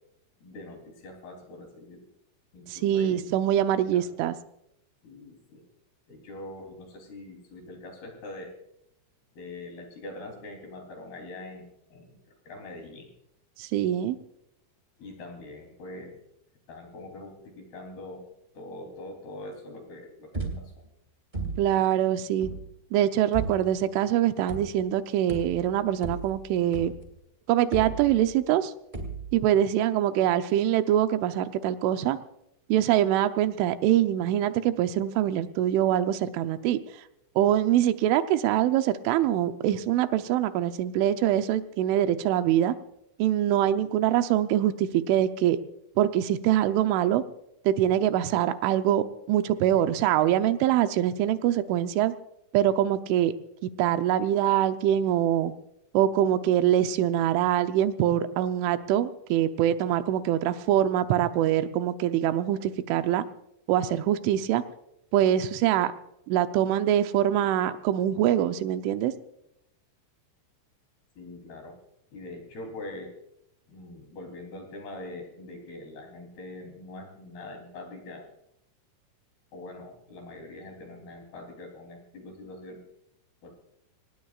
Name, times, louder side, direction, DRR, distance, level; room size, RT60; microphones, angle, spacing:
voice 1, 0.4-2.1 2.5-3.2 3.7-4.1 5.0-5.6 6.1-8.6 9.3-13.1 15.0-16.2 16.7-18.3 18.5-20.8 71.2-71.8 72.1-73.2 73.7-78.3 79.5-82.8 83.4-83.5, left 2 dB, 55° left, 2 dB, 5.2 m, -43 dB
voice 2, 2.7-4.4 13.6-14.2 21.6-22.5 22.9-26.9 27.5-28.7 29.3-32.2 32.7-36.8 37.4-42.7 43.2-45.6 46.0-47.2 47.7-52.1 52.5-53.3 53.6-55.5 55.9-63.2 63.7-64.6 65.1-65.9 66.3-69.1, right 11 dB, 85° right, 10 dB, 3.3 m, -24 dB
sound 1, 20.3-21.0 21.3-21.9 22.4-22.8 23.3-23.8 24.5-25.0 25.3-27.2 27.7-28.5 28.9-29.5, right 3 dB, 25° right, 0.9 m, -36 dB
25.5 x 19.0 x 2.5 m, 0.81 s
omnidirectional pair, 5.4 m